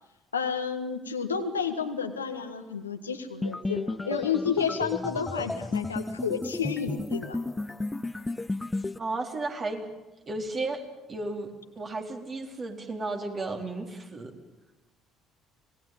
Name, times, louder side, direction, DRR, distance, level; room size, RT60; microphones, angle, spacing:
voice 1, 0.3-7.4, left 6 dB, 85° left, 6 dB, 1.6 m, -31 dB
sound 1, 3.4-9.0, left 2 dB, 15° left, 0.8 m, -33 dB
voice 2, 9.0-9.9 10.3-10.8 11.1-14.4, right 2 dB, 35° right, 3 dB, 3.9 m, -34 dB
26.5 x 18.5 x 9.0 m, 1.0 s
figure-of-eight pair, 55°, 0 cm